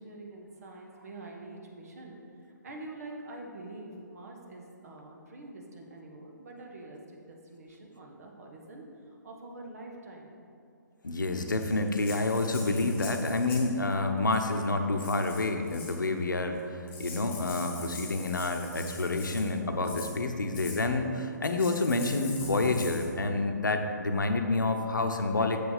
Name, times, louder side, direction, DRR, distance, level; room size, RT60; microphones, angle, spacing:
voice 1, 0.0-2.2 2.6-10.3, right 2 dB, 50° right, 0 dB, 1.4 m, -45 dB
voice 2, 11.0-25.7, left 2 dB, 75° left, 5 dB, 0.8 m, -28 dB
Rattle (instrument), 11.5-13.8 14.3-14.6 15.0-16.0 16.6-16.7 16.9-19.5 19.8-20.1 20.5-20.8 21.4-23.1, left 4 dB, 20° left, 1.5 m, -44 dB
6.9 x 4.9 x 6.5 m, 2.5 s
figure-of-eight pair, 135°, 10 cm